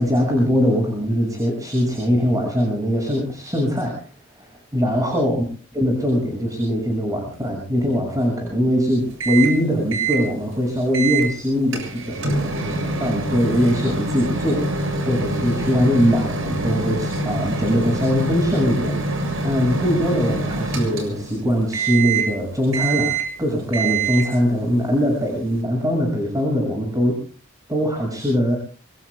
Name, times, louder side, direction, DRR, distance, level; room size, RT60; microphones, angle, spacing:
voice 1, 0.0-4.1 4.4-5.4 5.7-27.2 27.7-28.6, equal, 15° right, 1 dB, 6.3 m, -21 dB
Microwave oven, 9.2-9.6 9.9-10.2 10.9-11.3 11.7-21.4 21.7-22.4 22.7-23.4 23.7-24.4, right 3 dB, 80° right, 7.1 m, -25 dB
27.0 x 23.0 x 2.3 m, 0.38 s
head